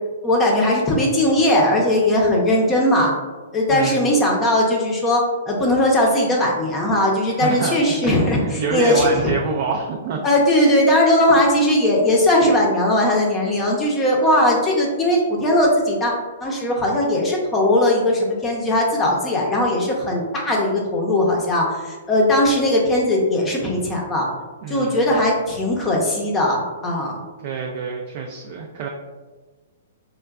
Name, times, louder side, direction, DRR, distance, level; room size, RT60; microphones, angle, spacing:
voice 1, 0.2-3.1 3.5-9.3 10.2-16.1 16.4-24.3 24.7-27.2, left 1 dB, 15° left, -2 dB, 0.7 m, -19 dB
voice 2, 3.7-4.1 7.4-10.2 24.6-25.2 27.4-28.9, right 4 dB, 50° right, 0 dB, 0.4 m, -26 dB
4.5 x 2.2 x 2.3 m, 1.3 s
hypercardioid pair, 140°, 0 cm